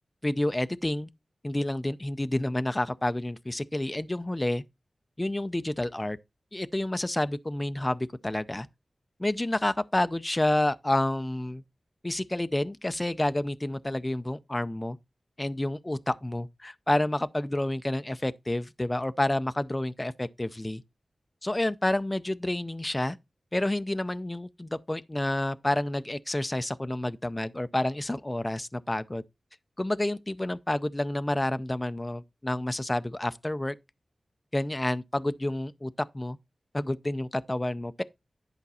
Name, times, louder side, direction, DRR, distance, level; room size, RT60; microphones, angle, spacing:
voice 1, 0.2-1.1 1.4-4.6 5.2-6.2 6.5-8.7 9.2-11.6 12.0-15.0 15.4-20.8 21.4-23.2 23.5-29.2 29.8-33.8 34.5-36.4 36.7-38.0, left 1 dB, 20° left, 0.5 m, -29 dB
10.5 x 5.1 x 4.1 m
wide cardioid pair, 85°, 0 cm